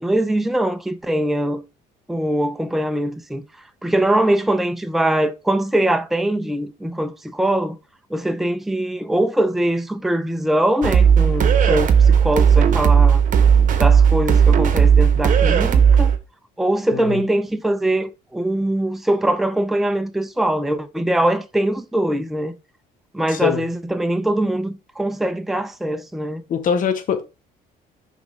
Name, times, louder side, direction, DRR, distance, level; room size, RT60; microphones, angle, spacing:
voice 1, 0.0-1.6 2.1-3.4 3.8-7.8 8.1-13.2 13.8-16.1 16.6-22.5 23.1-26.4, right 1 dB, ahead, 0.6 m, -22 dB
sound 1, 10.8-16.2, right 7 dB, 50° right, 1.0 m, -14 dB
voice 2, 26.5-27.2, left 7 dB, 50° left, 1.1 m, -22 dB
5.9 x 3.7 x 4.9 m
cardioid pair, 110°, 17 cm